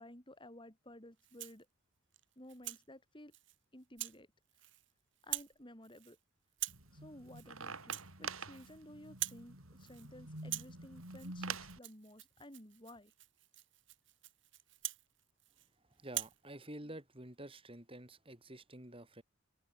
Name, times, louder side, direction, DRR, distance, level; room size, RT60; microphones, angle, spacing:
voice 1, 0.0-1.7 2.4-3.3 3.7-4.3 5.2-6.2 6.9-13.1, left 1 dB, 25° left, 4.8 m, -55 dB
Rattle (instrument), 1.2-1.7 2.1-2.8 3.3-3.6 4.0-4.2 4.5-4.9 5.2-5.6 5.8-6.2 6.5-6.9 7.3-7.5 7.8-8.8 9.0-9.5 9.8-10.1 10.4-15.7 16.1-16.4, right 15 dB, 60° right, 6.1 m, -44 dB
sound 1, 6.7-11.8, right 4 dB, 90° right, 7.4 m, -46 dB
voice 2, 16.0-19.2, right 1 dB, 25° right, 3.7 m, -49 dB
open air
head